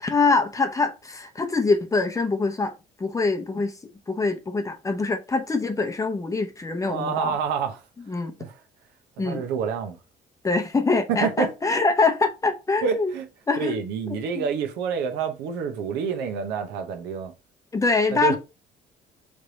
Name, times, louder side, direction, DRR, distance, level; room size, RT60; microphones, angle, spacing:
voice 1, 0.0-2.7 3.0-3.7 4.1-7.3 8.1-8.3 9.2-9.4 10.4-13.1 13.5-13.7 14.1-14.5 17.7-18.4, left 3 dB, 20° left, 0.8 m, -24 dB
voice 2, 6.9-7.8 8.4-8.5 9.2-10.0 11.1-11.5 12.8-13.3 13.6-17.3 18.1-18.4, right 6 dB, 90° right, 0.9 m, -27 dB
3.3 x 3.3 x 3.9 m
cardioid pair, 110°, 17 cm